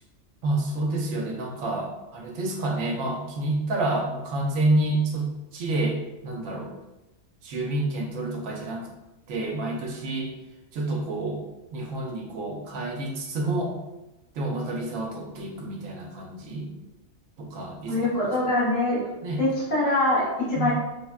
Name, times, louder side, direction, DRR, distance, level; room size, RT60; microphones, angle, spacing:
voice 1, 0.4-6.0 6.2-6.7 7.4-8.9 9.3-10.3 10.7-11.4 11.7-13.7 14.4-16.7 17.4-18.3 19.2-19.4 20.5-20.7, right 2 dB, 80° right, 1 dB, 1.0 m, -28 dB
voice 2, 17.9-19.1 19.4-20.7, left 1 dB, 70° left, -7 dB, 1.4 m, -24 dB
3.4 x 2.1 x 2.2 m, 1.0 s
omnidirectional pair, 1.3 m